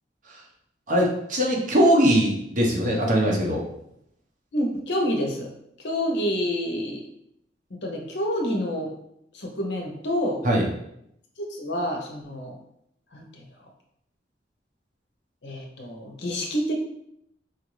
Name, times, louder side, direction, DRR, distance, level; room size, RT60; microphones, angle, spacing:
voice 1, 0.9-3.6 10.4-10.6, equal, 45° right, -2 dB, 0.9 m, -21 dB
voice 2, 4.5-5.5 5.8-7.0 7.8-8.9 9.3-10.4 11.4-12.5 13.1-13.4 15.4-16.7, equal, 75° left, 2 dB, 0.7 m, -28 dB
4.5 x 2.5 x 3.1 m, 0.76 s
head